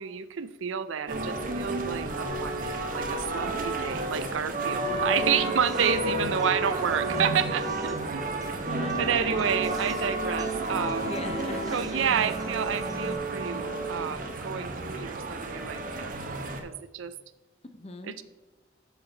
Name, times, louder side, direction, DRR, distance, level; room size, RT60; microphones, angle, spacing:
voice 1, 0.0-8.2 9.0-11.1 11.7-17.1 18.1-18.2, right 7 dB, 80° right, 13 dB, 0.4 m, -30 dB
sound 1, 1.1-16.6, right 2 dB, 45° right, 0.8 m, -31 dB
voice 2, 4.9-5.3 8.7-9.7 10.8-12.0 17.7-18.1, left 2 dB, 30° left, 7 dB, 0.6 m, -40 dB
sound 2, 5.2-13.2, right 2 dB, 20° right, 0.4 m, -43 dB
7.1 x 5.5 x 4.5 m, 1.2 s
head